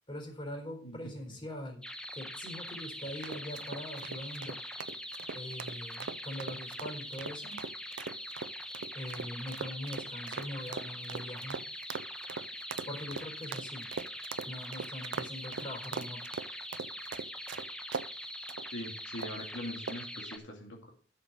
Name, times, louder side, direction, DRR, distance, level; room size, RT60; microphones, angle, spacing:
voice 1, 0.1-1.9 2.1-4.6 5.3-7.6 8.9-11.6 12.9-13.9 14.5-16.2, left 1 dB, 30° left, 2 dB, 4.2 m, -42 dB
sound 1, 1.8-20.4, equal, 5° left, 1.1 m, -43 dB
sound 2, 3.2-18.1 18.5-18.7 19.2-19.5 19.9-20.2, right 5 dB, 75° right, 0.5 m, -41 dB
voice 2, 18.7-20.9, equal, 75° left, 0 dB, 2.4 m, -42 dB
12.5 x 6.7 x 4.8 m, 0.42 s
head